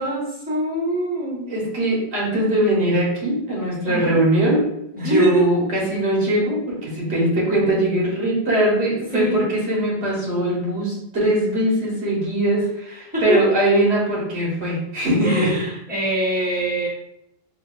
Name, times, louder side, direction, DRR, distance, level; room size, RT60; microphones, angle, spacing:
voice 1, 0.0-1.5 3.8-4.2 5.0-5.5 9.1-9.4 13.1-13.4 15.2-16.9, right 1 dB, 10° right, -6 dB, 1.1 m, -23 dB
voice 2, 1.5-4.7 4.9-15.5, right 1 dB, 90° right, -4 dB, 1.5 m, -21 dB
3.9 x 2.8 x 2.4 m, 0.83 s
omnidirectional pair, 1.1 m